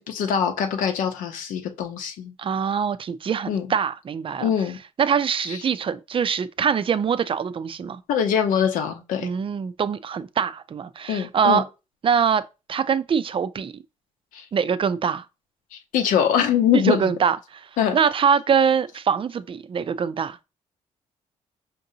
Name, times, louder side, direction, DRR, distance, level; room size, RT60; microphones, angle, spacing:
voice 1, 0.0-2.3 3.5-3.7 4.4-4.8 5.4-5.6 8.1-9.3 11.1-11.6 14.3-14.4 15.7-17.1 17.8-18.0, left 8 dB, 80° left, 0.8 m, -23 dB
voice 2, 2.4-4.5 5.0-8.0 9.2-11.6 12.0-12.4 12.7-13.7 14.5-15.2 16.7-17.7 17.9-20.4, right 7 dB, 40° right, 0.4 m, -23 dB
5.1 x 2.7 x 2.7 m
supercardioid pair, 65°, 14 cm